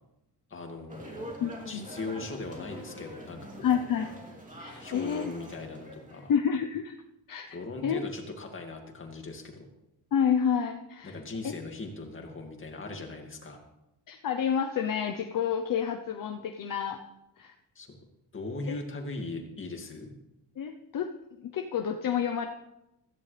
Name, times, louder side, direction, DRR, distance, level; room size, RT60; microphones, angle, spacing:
voice 1, 0.5-1.3 1.7-3.7 4.8-6.3 7.5-9.7 11.0-13.6 17.8-17.9 18.3-20.1, left 3 dB, 30° left, 2 dB, 2.3 m, -39 dB
sound 1, 0.9-6.3, equal, 20° right, 2.8 m, -44 dB
voice 2, 1.4-1.9 3.6-4.1 4.6-5.3 6.3-6.9 7.3-7.5 7.8-8.0 10.1-11.2 14.1-17.0 17.4-17.5 18.7-18.8 20.6-21.1 21.4-22.5, left 8 dB, 55° left, 4 dB, 0.9 m, -29 dB
16.0 x 14.0 x 3.4 m, 0.91 s
cardioid pair, 135°, 39 cm